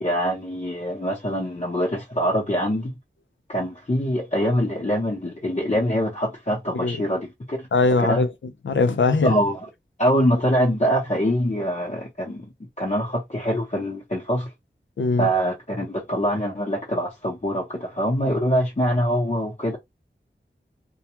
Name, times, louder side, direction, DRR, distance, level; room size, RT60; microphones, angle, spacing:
voice 1, 0.0-3.0 3.5-7.7 8.0-8.2 9.2-9.7 10.0-12.5 12.8-14.5 15.2-19.8, equal, 40° left, 0.9 m, -24 dB
voice 2, 7.7-8.3 8.6-9.3 15.0-15.3, left 3 dB, 85° left, 0.5 m, -20 dB
2.3 x 2.2 x 2.9 m
wide cardioid pair, 65°, 19 cm